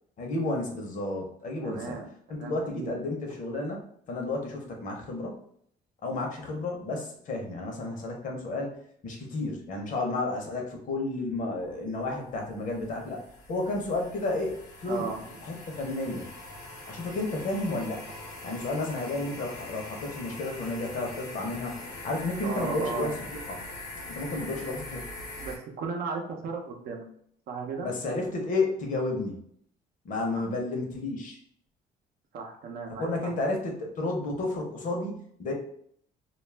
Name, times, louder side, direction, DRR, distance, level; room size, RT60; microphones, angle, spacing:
voice 1, 0.2-2.0 2.3-3.8 4.1-5.4 6.0-8.8 9.0-13.2 13.5-15.1 15.4-16.3 16.9-18.0 18.4-23.6 24.1-25.1 27.8-29.4 30.0-31.4 32.9-35.5, left 2 dB, 50° left, 1 dB, 0.7 m, -32 dB
voice 2, 1.6-2.9 14.9-15.2 22.4-23.1 25.4-27.1 27.5-27.9 32.3-33.3, right 5 dB, 65° right, 1 dB, 0.6 m, -35 dB
sound 1, 11.7-25.6, left 2 dB, 90° left, 0.8 m, -43 dB
2.3 x 2.0 x 3.2 m, 0.65 s
cardioid pair, 110°, 17 cm